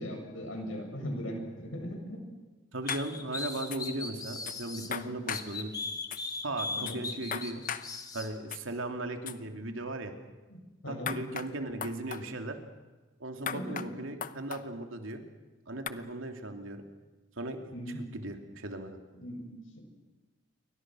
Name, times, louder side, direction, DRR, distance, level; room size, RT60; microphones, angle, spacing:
voice 1, 0.0-2.2 4.8-5.1 6.7-7.0 10.5-10.6 10.8-11.1 13.5-13.9 17.7-18.0 19.1-19.8, equal, 80° left, 2 dB, 7.9 m, -39 dB
voice 2, 2.7-5.7 6.4-7.6 8.1-10.1 10.9-12.6 13.2-15.2 15.7-16.8 17.4-17.7 18.1-19.0, right 2 dB, 85° right, 5 dB, 3.0 m, -37 dB
sound 1, 2.9-3.1 3.7-3.8 4.5-4.6 4.9-5.5 6.1-6.2 6.9-7.0 7.3-7.9 8.5-8.6 9.3-9.4 11.1-11.5 11.8-12.2 13.5-13.9 14.2-14.6 15.9-16.0, left 7 dB, 40° left, 0.9 m, -36 dB
sound 2, 2.9-4.9 5.3-8.3, left 3 dB, 20° left, 2.2 m, -38 dB
28.5 x 24.0 x 6.4 m, 1.2 s
head